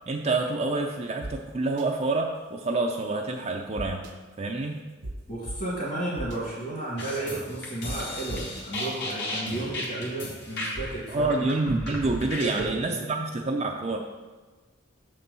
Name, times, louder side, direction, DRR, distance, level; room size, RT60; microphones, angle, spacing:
voice 1, 0.0-4.1 4.4-4.8 11.1-14.0, right 2 dB, 30° right, 1 dB, 0.4 m, -27 dB
sound 1, 1.2-1.3 1.8-1.9 3.8-4.1 5.0-5.1 5.5-5.6 6.2-6.4 7.9-8.0 8.3-8.6, right 1 dB, 70° right, 0.8 m, -35 dB
voice 2, 5.3-11.3 12.4-13.1, right 2 dB, 40° left, -9 dB, 2.0 m, -33 dB
sound 2, 7.0-12.7, left 1 dB, 55° left, 1.6 m, -35 dB
7.1 x 4.4 x 5.3 m, 1.3 s
head